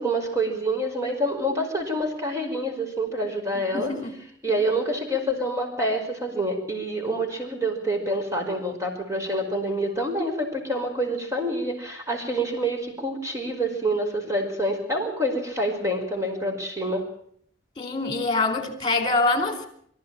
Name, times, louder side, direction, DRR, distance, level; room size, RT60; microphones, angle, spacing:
voice 1, 0.0-3.9 4.4-17.0, right 1 dB, 15° right, 5.1 m, -27 dB
voice 2, 3.7-4.1 17.8-19.7, left 3 dB, 25° left, 4.1 m, -25 dB
24.0 x 15.0 x 9.0 m
head